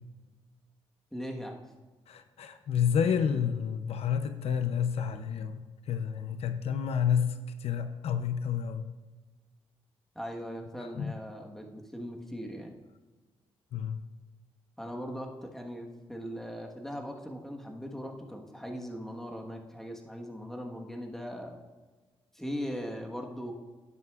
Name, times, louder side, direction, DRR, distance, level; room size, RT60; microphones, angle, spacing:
voice 1, 1.1-1.6 10.1-12.8 14.8-21.6 22.3-23.5, equal, 5° left, 1 dB, 1.3 m, -39 dB
voice 2, 2.1-8.9 10.8-11.1 13.7-14.0, left 7 dB, 75° left, 9 dB, 0.6 m, -30 dB
12.0 x 9.4 x 2.4 m, 1.3 s
cardioid pair, 105°, 11 cm